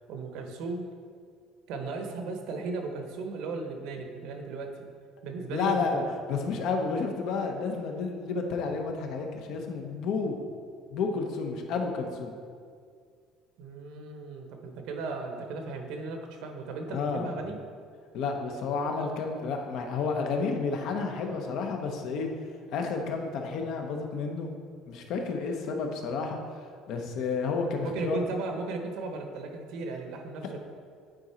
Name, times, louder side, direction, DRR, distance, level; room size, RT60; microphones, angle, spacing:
voice 1, 0.1-0.8 1.7-4.9 5.2-6.1 13.6-17.6 27.8-30.6, right 3 dB, 65° right, 4 dB, 0.8 m, -36 dB
voice 2, 5.5-6.0 6.3-10.4 10.9-12.3 16.9-17.3 18.1-22.3 22.7-24.5 24.9-26.4 26.9-28.2, left 4 dB, 55° left, 3 dB, 0.8 m, -31 dB
9.0 x 3.9 x 4.3 m, 2.1 s
cardioid pair, 160°, 0 cm